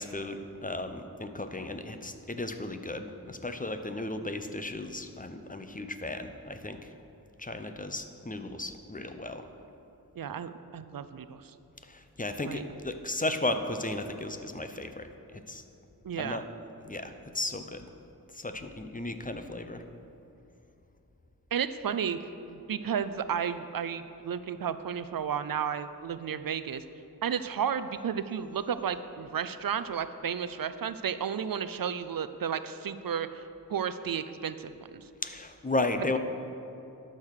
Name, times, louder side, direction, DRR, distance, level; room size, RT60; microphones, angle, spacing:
voice 1, 0.0-6.8 7.4-9.4 11.9-15.1 15.3-15.6 16.2-16.4 16.8-17.9 18.3-19.8 35.2-36.2, left 2 dB, 20° left, 8 dB, 0.7 m, -35 dB
voice 2, 10.2-11.5 12.5-12.7 16.0-16.4 21.5-22.2 22.5-26.8 27.2-33.4 33.7-35.0, right 7 dB, 65° right, 12 dB, 0.5 m, -33 dB
12.0 x 6.6 x 6.5 m, 2.9 s
wide cardioid pair, 80°, 36 cm